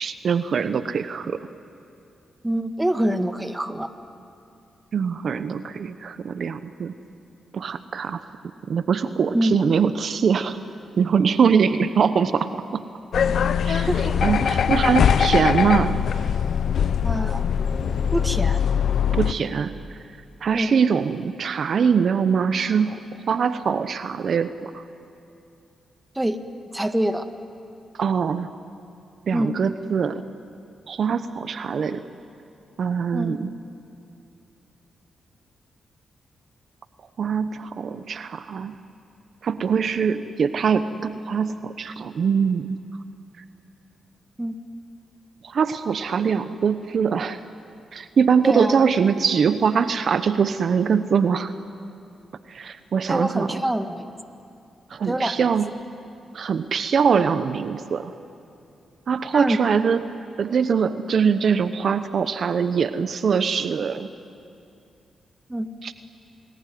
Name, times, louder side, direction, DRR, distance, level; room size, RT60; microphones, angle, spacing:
voice 1, 0.0-1.5 4.9-6.9 7.5-8.2 8.7-10.6 11.0-12.8 13.6-13.9 14.2-16.0 19.1-19.8 20.4-24.8 28.0-28.5 29.3-30.2 30.9-32.0 32.8-33.5 37.2-38.8 39.4-42.8 45.4-47.4 47.9-51.5 52.5-53.6 54.9-55.7 56.3-58.1 59.1-60.0 60.4-64.1 65.8-65.9, right 6 dB, 65° right, 11 dB, 0.9 m, -23 dB
voice 2, 2.4-3.9 9.3-9.5 13.9-14.5 17.0-17.4 18.1-18.6 20.5-20.7 26.2-26.4 26.7-27.3 29.3-29.5 33.1-33.4 44.4-44.5 48.4-48.8 53.1-54.1 55.1-55.5 59.3-59.6 65.5-65.7, right 1 dB, 15° right, 8 dB, 1.8 m, -25 dB
sound 1, 13.1-19.3, left 7 dB, 70° left, 0.9 m, -21 dB
29.5 x 20.0 x 9.4 m, 2.6 s
cardioid pair, 65°, 0 cm